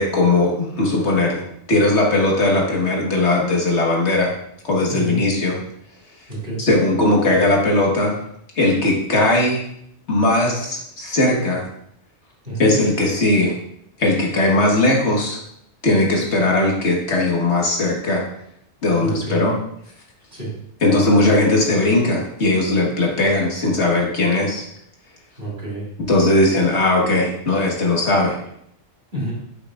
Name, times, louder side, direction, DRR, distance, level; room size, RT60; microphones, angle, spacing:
voice 1, 0.0-4.3 4.6-5.5 6.6-8.1 8.6-9.6 10.1-11.7 12.6-13.5 14.0-15.4 15.8-18.2 18.8-19.6 20.8-24.7 26.1-28.4, left 2 dB, 70° left, -1 dB, 1.8 m, -18 dB
voice 2, 6.3-6.6 12.4-12.8 19.0-19.5 20.3-20.5 25.4-25.9 29.1-29.3, right 2 dB, 50° right, -5 dB, 2.8 m, -28 dB
8.8 x 6.4 x 2.4 m, 0.72 s
omnidirectional pair, 1.2 m